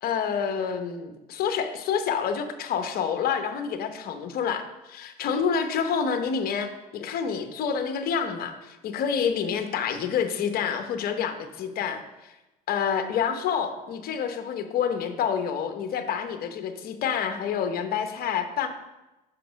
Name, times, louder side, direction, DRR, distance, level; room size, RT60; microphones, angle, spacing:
voice 1, 0.0-12.3 12.7-18.7, left 7 dB, 50° left, 8 dB, 0.9 m, -28 dB
5.8 x 5.2 x 5.1 m, 1.0 s
supercardioid pair, 90°, 20 cm